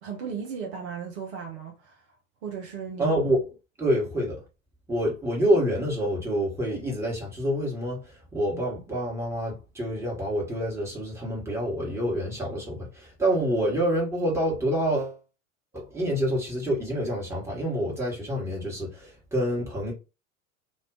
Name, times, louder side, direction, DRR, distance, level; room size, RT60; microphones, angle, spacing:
voice 1, 0.0-2.2 2.4-3.2, right 7 dB, 55° right, 0.7 m, -36 dB
voice 2, 3.0-3.4 3.8-4.4 4.9-15.2 15.7-19.9, equal, 5° right, 1.3 m, -27 dB
2.4 x 2.2 x 3.6 m
figure-of-eight pair, 80°, 41 cm